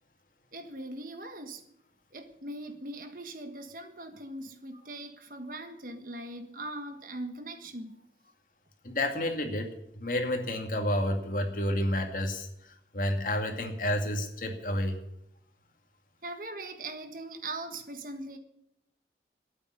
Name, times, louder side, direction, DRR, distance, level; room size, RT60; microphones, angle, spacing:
voice 1, 0.5-1.6 2.1-8.0 16.2-18.4, right 2 dB, 50° right, 1.5 m, -40 dB
voice 2, 8.8-15.0, left 1 dB, 50° left, 2.4 m, -30 dB
12.5 x 9.4 x 9.7 m
head